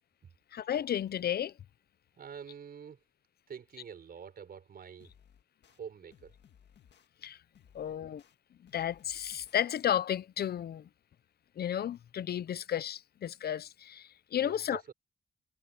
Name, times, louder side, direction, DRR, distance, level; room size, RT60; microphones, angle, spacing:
voice 1, 0.5-1.5 7.2-7.4 7.7-8.2 8.6-10.9 11.6-14.9, left 10 dB, 65° left, 0.6 m, -33 dB
voice 2, 2.2-3.0 3.5-5.1 5.7-6.4 14.4-14.9, right 7 dB, 60° right, 4.7 m, -47 dB
sound 1, 5.0-5.8 6.1-7.1 7.5-8.3 8.7-9.6, left 8 dB, 90° left, 1.7 m, -61 dB
wide cardioid pair, 165°, 18 cm